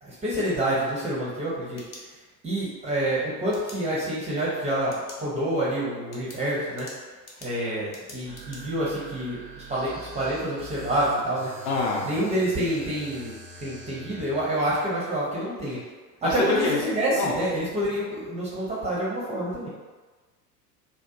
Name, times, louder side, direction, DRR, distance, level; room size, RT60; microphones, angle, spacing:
voice 1, 0.0-6.9 7.4-11.7 12.0-15.8 16.2-19.7, right 1 dB, 15° right, -7 dB, 0.4 m, -28 dB
sound 1, 1.6-2.6 3.5-3.8 4.8-5.2 5.6-5.7 6.1-8.6, left 2 dB, 70° left, 0.8 m, -46 dB
sound 2, 8.3-14.5, right 2 dB, 90° right, 0.6 m, -44 dB
voice 2, 11.6-12.1 16.2-16.8 17.2-17.3, left 3 dB, 45° left, -1 dB, 0.5 m, -25 dB
2.7 x 2.1 x 2.4 m, 1.3 s
figure-of-eight pair, 80°, 49 cm